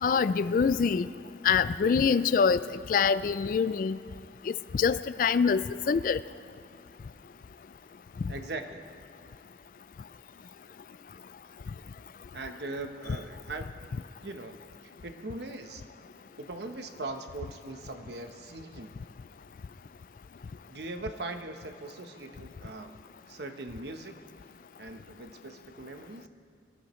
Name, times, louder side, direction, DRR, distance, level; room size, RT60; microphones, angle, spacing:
voice 1, 0.0-1.1 1.4-4.0 4.5-6.2 8.2-8.3, left 6 dB, 50° left, 16 dB, 0.3 m, -25 dB
voice 2, 8.3-8.8 12.3-13.8 14.2-15.9 16.4-19.0 20.7-23.0 23.3-24.1 24.8-26.3, right 2 dB, 70° right, 6 dB, 1.0 m, -40 dB
23.5 x 14.5 x 3.2 m, 2.6 s
head